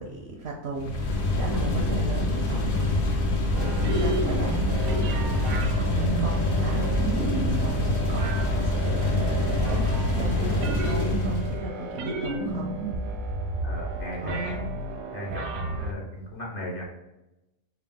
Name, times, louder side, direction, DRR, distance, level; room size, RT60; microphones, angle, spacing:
voice 1, 0.0-3.2 3.6-12.8 14.1-14.7, right 2 dB, 65° right, 0 dB, 0.7 m, -35 dB
sound 1, 0.7-11.6, left 2 dB, 70° left, 1.1 m, -25 dB
sound 2, 3.5-15.9, right 2 dB, 80° right, 1.1 m, -31 dB
voice 2, 13.6-14.6 15.1-16.8, left 1 dB, 50° left, -2 dB, 0.8 m, -37 dB
4.1 x 2.4 x 3.4 m, 0.96 s
omnidirectional pair, 1.5 m